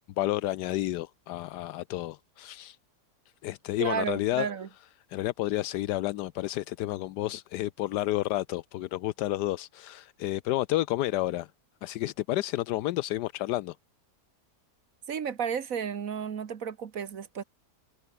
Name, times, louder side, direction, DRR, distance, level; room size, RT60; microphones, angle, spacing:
voice 1, 0.2-2.8 3.4-4.5 5.1-11.5 11.8-13.8, left 15 dB, 85° left, 1.2 m, -30 dB
voice 2, 3.8-4.7 15.1-17.4, right 7 dB, 55° right, 1.6 m, -32 dB
omnidirectional pair, 1.8 m